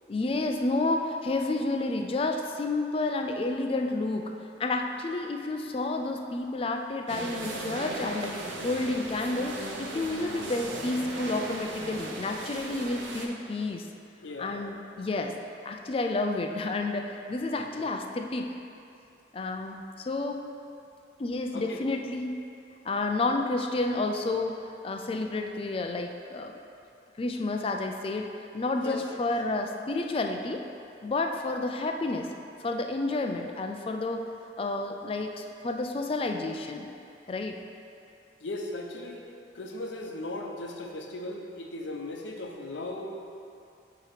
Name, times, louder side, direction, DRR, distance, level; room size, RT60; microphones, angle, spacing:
voice 1, 0.1-4.3 4.6-8.4 8.6-13.9 14.4-15.3 15.6-18.5 19.3-20.5 21.2-22.4 22.8-26.6 27.2-30.6 31.0-32.3 32.6-34.2 34.6-36.9 37.3-37.6, left 2 dB, 30° left, 3 dB, 0.3 m, -30 dB
sound 1, 7.1-13.3, right 2 dB, 85° right, 0.7 m, -37 dB
voice 2, 14.2-14.6 17.8-17.9 21.5-21.8 28.8-29.0 38.4-43.1, left 2 dB, 75° left, 2 dB, 0.6 m, -37 dB
7.4 x 2.9 x 5.1 m, 2.6 s
head